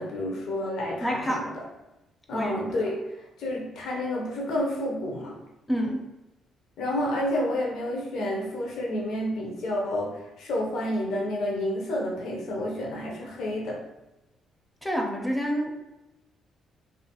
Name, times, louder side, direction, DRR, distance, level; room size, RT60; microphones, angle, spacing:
voice 1, 0.0-1.6 2.3-3.0 3.4-5.4 6.8-13.8, left 1 dB, 75° left, -1 dB, 0.5 m, -30 dB
voice 2, 1.0-1.5 2.3-2.9 5.7-6.0 14.8-15.8, equal, 10° left, 1 dB, 0.4 m, -28 dB
2.4 x 2.3 x 2.7 m, 0.96 s
cardioid pair, 90°, 0 cm